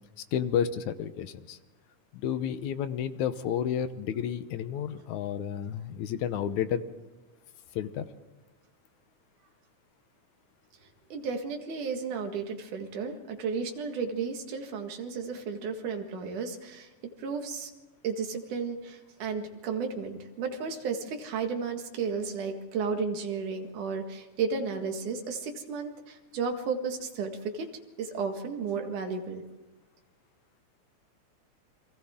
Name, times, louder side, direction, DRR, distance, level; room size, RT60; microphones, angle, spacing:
voice 1, 0.3-1.6 2.1-6.8 7.8-8.1, left 9 dB, 75° left, 11 dB, 2.3 m, -31 dB
voice 2, 11.1-16.9 17.2-17.7 18.0-27.7 28.0-29.4, right 5 dB, 80° right, 4 dB, 3.3 m, -33 dB
30.0 x 23.5 x 3.7 m, 1.3 s
omnidirectional pair, 3.5 m